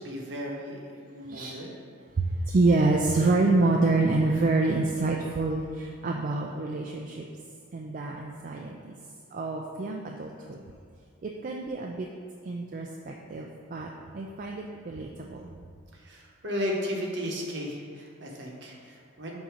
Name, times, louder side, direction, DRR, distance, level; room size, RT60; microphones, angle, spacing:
voice 1, 0.0-1.7 15.9-19.4, equal, 60° right, -1 dB, 1.0 m, -35 dB
voice 2, 1.3-1.6 2.2-7.2 7.7-8.9 9.3-10.6 11.2-12.1 12.4-13.9 14.1-15.6, right 3 dB, 40° right, 0 dB, 0.3 m, -27 dB
7.6 x 2.7 x 5.0 m, 2.2 s
head